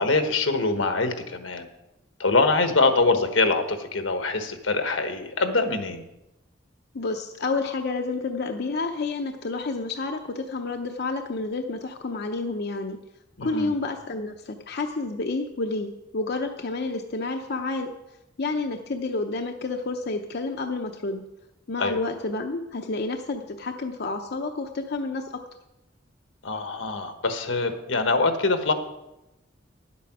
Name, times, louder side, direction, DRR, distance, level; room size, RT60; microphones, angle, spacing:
voice 1, 0.0-1.7 2.2-6.0 13.4-13.7 21.8-22.0 26.4-28.7, left 3 dB, 85° left, 7 dB, 1.2 m, -24 dB
voice 2, 6.9-13.0 13.4-17.9 18.4-21.2 21.7-25.4, left 3 dB, 55° left, 4 dB, 0.7 m, -29 dB
10.5 x 8.4 x 6.0 m, 0.96 s
head